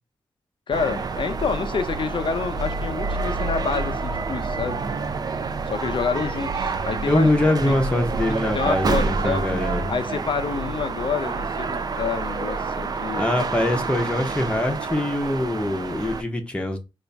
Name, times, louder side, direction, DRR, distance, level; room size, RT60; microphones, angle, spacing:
voice 1, 0.7-4.8 5.7-7.3 7.7-7.8 8.5-9.5 9.9-13.3, left 5 dB, 65° left, 0.4 m, -28 dB
sound 1, 0.7-16.2, right 4 dB, 45° right, 0.4 m, -28 dB
voice 2, 7.1-9.9 13.2-16.8, left 1 dB, 10° left, 0.7 m, -23 dB
4.0 x 2.4 x 3.3 m
wide cardioid pair, 175°, 9 cm